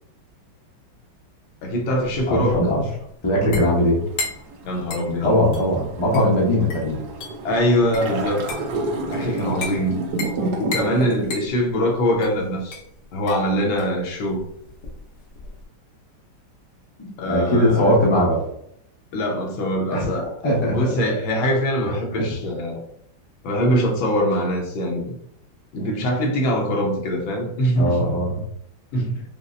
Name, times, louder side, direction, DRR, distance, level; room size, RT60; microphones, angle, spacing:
voice 1, 1.6-2.6 4.6-5.4 7.4-8.4 9.1-10.0 10.6-12.8 13.1-14.4 17.2-17.9 19.1-22.8 23.4-25.1 25.7-28.0 28.9-29.2, equal, 80° left, 1 dB, 1.6 m, -23 dB
sound 1, 1.7-15.6, left 4 dB, 65° left, 1.2 m, -36 dB
voice 2, 2.3-2.8 3.2-4.0 5.2-7.0 17.0-18.4 19.9-20.1 20.4-20.9 27.7-28.4, equal, 40° left, -5 dB, 0.4 m, -20 dB
sound 2, 3.6-11.3, right 2 dB, 75° right, 1.0 m, -30 dB
5.3 x 2.0 x 2.5 m, 0.72 s
omnidirectional pair, 2.2 m